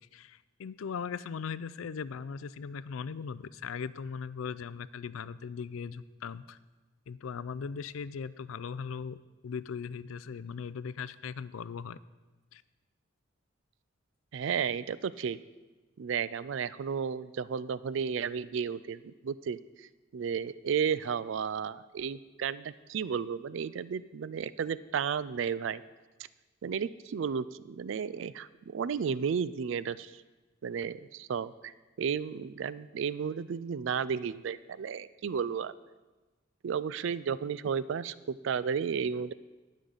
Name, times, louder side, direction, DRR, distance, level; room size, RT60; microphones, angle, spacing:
voice 1, 0.1-6.6 7.1-9.2 9.4-12.0 12.5-12.6, left 6 dB, 90° left, 17 dB, 0.4 m, -39 dB
voice 2, 14.3-15.4 16.0-19.9 20.1-25.8 26.6-30.2 30.6-31.7 32.0-35.7 36.6-39.3, right 7 dB, 70° right, 17 dB, 0.3 m, -33 dB
19.5 x 6.4 x 4.0 m, 1.2 s
head